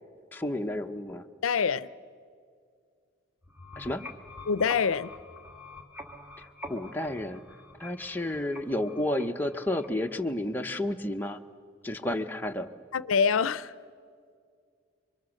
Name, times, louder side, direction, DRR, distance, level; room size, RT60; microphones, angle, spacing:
voice 1, 0.3-1.2 3.8-4.0 6.7-7.4 7.8-11.4 11.8-12.7, left 1 dB, 10° left, 0.8 m, -31 dB
voice 2, 1.4-1.9 4.5-5.1 12.9-13.7, left 6 dB, 90° left, 0.5 m, -25 dB
sound 1, 3.4-10.2, left 1 dB, 5° right, 1.8 m, -46 dB
28.5 x 24.0 x 6.4 m
head